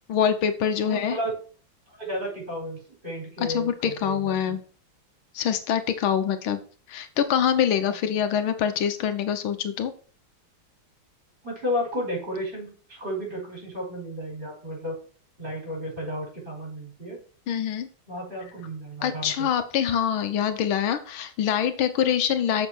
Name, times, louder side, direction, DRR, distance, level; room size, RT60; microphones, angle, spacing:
voice 1, 0.1-1.2 3.4-4.6 5.3-6.6 6.9-9.9 17.5-17.9 19.0-22.7, left 8 dB, 90° left, 9 dB, 1.7 m, -25 dB
voice 2, 0.8-1.3 2.0-4.6 7.8-7.9 11.4-14.9 15.4-17.2 18.1-19.5, equal, 25° right, -2 dB, 5.8 m, -33 dB
7.4 x 6.3 x 6.2 m, 0.41 s
omnidirectional pair, 2.2 m